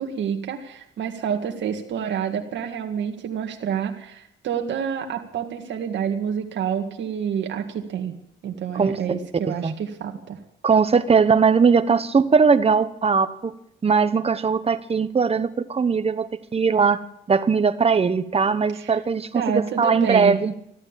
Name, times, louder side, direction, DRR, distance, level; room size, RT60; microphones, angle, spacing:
voice 1, 0.0-8.1 8.4-10.4 18.7-18.9 19.3-20.4, right 8 dB, 65° right, 3 dB, 1.9 m, -28 dB
voice 2, 10.6-13.5 13.8-17.0 17.3-19.4 19.8-20.5, right 5 dB, 30° right, 12 dB, 1.1 m, -20 dB
14.5 x 12.0 x 7.4 m, 0.76 s
cardioid pair, 90°, 20 cm